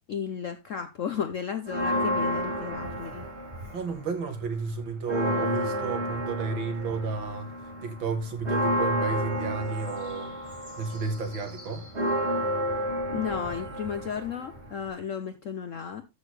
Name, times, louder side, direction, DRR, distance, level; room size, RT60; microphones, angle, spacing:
voice 1, 0.1-3.3 13.1-16.1, left 7 dB, 70° left, 0.7 m, -34 dB
Church bell, 1.7-4.0 4.4-4.5 4.8-14.9, equal, 30° right, 3.3 m, -31 dB
voice 2, 3.7-7.5 7.8-10.3 10.8-11.9, right 4 dB, 75° right, 2.4 m, -32 dB
13.0 x 6.4 x 3.2 m
omnidirectional pair, 2.2 m